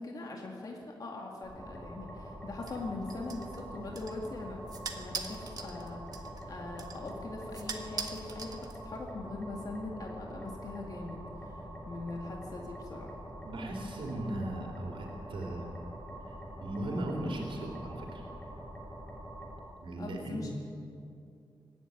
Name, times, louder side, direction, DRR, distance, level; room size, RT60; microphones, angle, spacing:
voice 1, 0.0-4.6 5.0-13.2 20.0-20.5, left 2 dB, 45° left, 0 dB, 2.2 m, -41 dB
sound 1, 1.4-19.6, right 1 dB, 10° left, 5.8 m, -45 dB
sound 2, 2.7-9.1, right 5 dB, 50° right, 1.5 m, -44 dB
voice 2, 13.4-15.7 16.2-18.2 19.8-20.5, right 1 dB, 85° right, 0 dB, 3.6 m, -38 dB
24.5 x 11.0 x 9.8 m, 2.5 s
wide cardioid pair, 170°, 9 cm